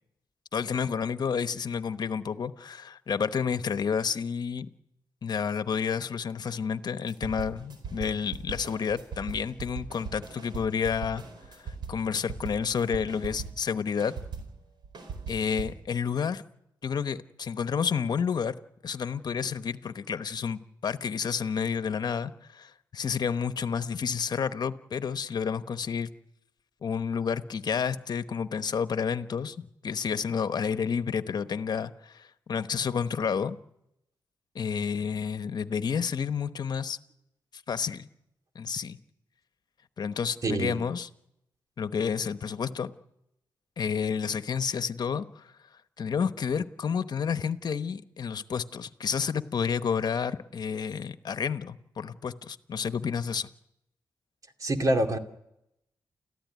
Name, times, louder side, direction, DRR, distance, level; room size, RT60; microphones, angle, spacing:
voice 1, 0.5-4.7 5.2-11.2 11.6-14.1 15.3-16.4 16.8-18.5 18.8-26.1 26.8-33.6 34.5-37.0 37.7-38.1 38.5-39.0 40.0-41.1 41.8-42.9 43.8-45.4 46.0-53.5, left 6 dB, 60° left, 11 dB, 1.0 m, -30 dB
sound 1, 7.1-13.7 14.0-15.9, right 5 dB, 70° right, 4.7 m, -40 dB
voice 2, 40.4-40.8 54.6-55.2, right 1 dB, 50° right, 5 dB, 2.6 m, -25 dB
29.5 x 14.5 x 9.5 m, 0.87 s
cardioid pair, 75°, 8 cm